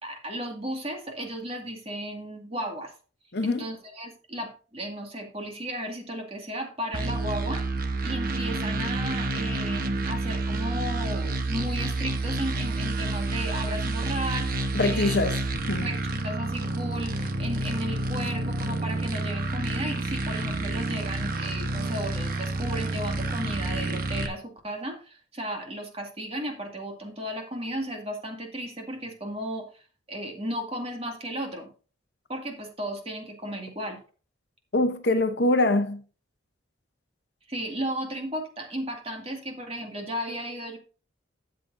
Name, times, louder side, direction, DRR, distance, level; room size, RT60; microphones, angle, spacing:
voice 1, 0.0-2.9 3.4-7.6 8.0-15.2 15.8-16.0 16.2-29.8 30.1-31.7 32.3-34.0 37.5-40.8, equal, 30° right, 2.1 m, -34 dB
voice 2, 3.3-3.6 14.7-15.4 15.7-15.9 34.7-36.0, left 2 dB, 55° left, 0.9 m, -24 dB
sound 1, 6.9-24.3, right 2 dB, 45° right, 1.0 m, -29 dB
12.5 x 7.8 x 2.6 m
head